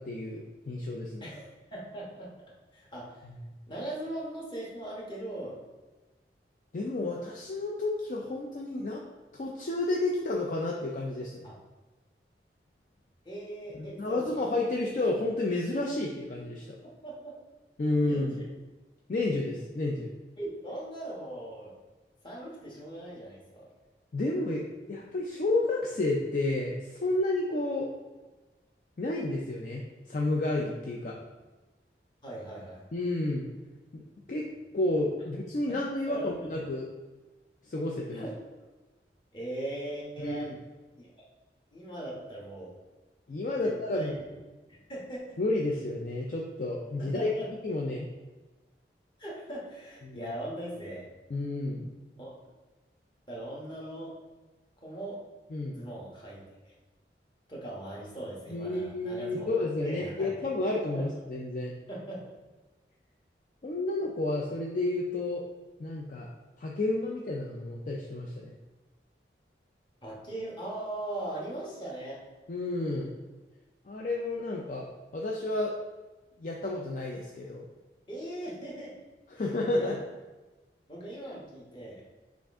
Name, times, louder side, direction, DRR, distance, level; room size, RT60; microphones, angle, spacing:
voice 1, 0.0-1.3 3.2-3.3 6.7-9.0 9.3-11.5 13.8-16.6 17.8-18.4 19.1-20.1 24.1-24.6 24.9-27.9 29.0-29.8 30.1-31.2 32.9-33.5 33.9-34.0 34.3-34.5 34.7-36.9 37.6-38.2 40.2-40.4 43.3-44.1 45.4-47.3 47.6-48.1 50.0-50.3 51.3-51.9 55.5-55.8 58.5-61.7 63.6-65.4 65.8-66.3 66.6-68.5 72.5-73.1 73.9-74.9 75.1-75.7 76.4-77.7 79.3-80.0, left 2 dB, 45° left, -2 dB, 0.4 m, -31 dB
voice 2, 1.2-2.3 2.7-3.2 3.7-5.6 11.4-11.5 13.2-14.4 17.0-17.3 18.0-18.4 20.4-21.7 22.2-23.7 32.2-32.8 36.1-36.3 38.1-38.6 39.3-40.5 41.0-41.1 41.7-42.7 43.6-44.1 44.7-45.4 47.0-47.5 49.2-51.1 52.2-52.3 53.3-54.1 54.8-55.2 55.7-56.7 57.5-59.5 59.8-60.3 60.9-61.0 61.9-62.3 70.0-72.2 78.1-79.0 79.8-79.9 80.9-82.0, right 1 dB, 25° left, -5 dB, 1.1 m, -39 dB
6.0 x 2.5 x 3.5 m, 1.2 s
head